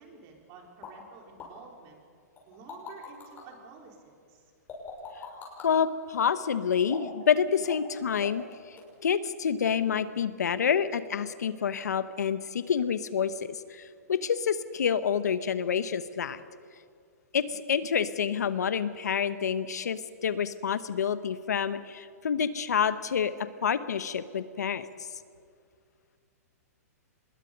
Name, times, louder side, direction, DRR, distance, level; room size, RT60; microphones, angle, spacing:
voice 1, 0.0-2.0 2.5-4.4, right 5 dB, 40° right, 1 dB, 4.1 m, -50 dB
sound 1, 0.8-0.9 1.4-1.5 2.4-3.4 4.7-5.7 6.8-7.2 7.6-7.9 8.2-8.5 8.8-8.9, left 5 dB, 20° left, 6.1 m, -42 dB
voice 2, 5.6-8.8 9.0-16.4 17.3-23.3 23.6-24.9, left 7 dB, 85° left, 13 dB, 1.0 m, -28 dB
25.0 x 21.0 x 5.3 m, 2.2 s
hypercardioid pair, 140°, 9 cm